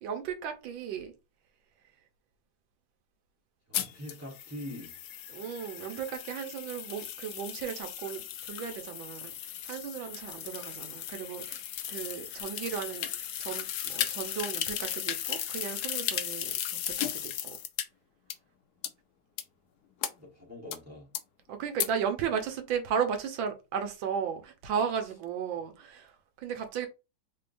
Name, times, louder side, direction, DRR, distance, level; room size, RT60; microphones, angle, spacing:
voice 1, 0.0-1.1 5.3-9.3 9.6-11.6 11.9-17.6 21.5-26.9, right 7 dB, 80° right, 1.5 m, -35 dB
sound 1, 3.7-17.8 18.3-18.4 18.8-18.9 19.4-19.5 20.0-20.1 20.7-20.8 21.1-21.2 21.8-21.9, left 10 dB, 70° left, 0.9 m, -36 dB
voice 2, 3.7-5.1 20.2-21.1, left 1 dB, 20° right, 0.4 m, -43 dB
3.6 x 3.6 x 2.5 m
omnidirectional pair, 2.1 m